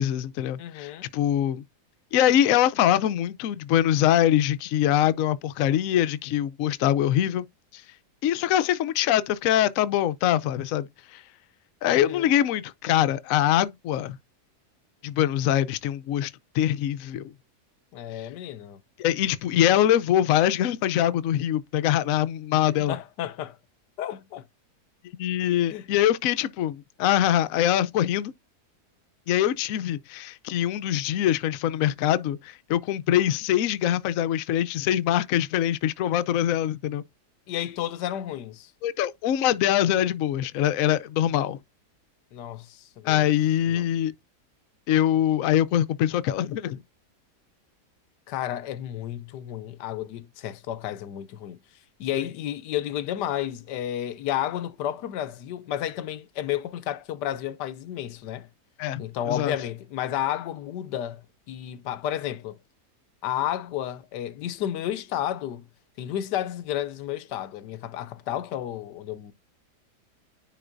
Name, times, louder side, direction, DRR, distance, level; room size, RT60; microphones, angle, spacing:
voice 1, 0.0-1.6 2.1-7.4 7.7-7.8 8.2-11.2 11.8-14.2 15.0-17.3 19.0-23.0 25.2-28.3 29.3-37.0 38.8-41.6 43.0-44.1 44.9-46.8 58.8-59.0 59.3-59.5, left 11 dB, 65° left, 0.9 m, -23 dB
voice 2, 0.6-1.1 11.9-12.3 17.9-18.8 22.9-23.6 24.0-24.4 25.7-25.9 37.5-38.7 42.3-43.3 43.7-43.9 48.3-51.6 52.0-58.5 59.0-61.2 61.5-62.6 63.2-65.7 66.0-69.3, left 11 dB, 85° left, 1.3 m, -32 dB
10.0 x 3.7 x 2.5 m
omnidirectional pair, 1.8 m